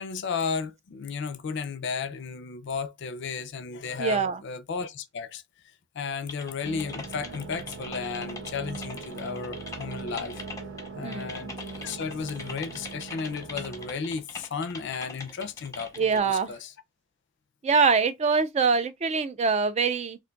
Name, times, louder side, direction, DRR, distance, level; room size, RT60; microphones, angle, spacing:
voice 1, 0.0-5.4 5.9-10.4 10.9-16.7, left 5 dB, 60° left, 0.4 m, -34 dB
voice 2, 4.0-4.4 11.0-11.5 16.0-16.5 17.6-20.2, right 5 dB, 30° right, 0.3 m, -24 dB
Typing, 6.3-16.2, left 3 dB, 15° left, 0.6 m, -42 dB
sound 1, 6.6-13.9, right 4 dB, 80° right, 0.9 m, -40 dB
2.5 x 2.2 x 3.8 m
head